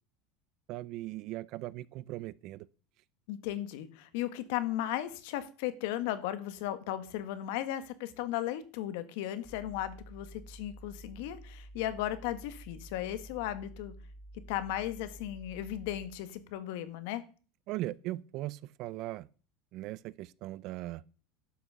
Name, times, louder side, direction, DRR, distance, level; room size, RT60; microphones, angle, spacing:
voice 1, 0.7-2.7 17.7-19.3 19.7-21.0, right 17 dB, 50° right, 0.5 m, -39 dB
voice 2, 3.3-13.9 14.5-17.2, left 13 dB, 70° left, 1.5 m, -36 dB
sound 1, 9.4-16.2, right 1 dB, 10° left, 2.1 m, -50 dB
11.5 x 6.2 x 6.8 m
supercardioid pair, 145°, 0 cm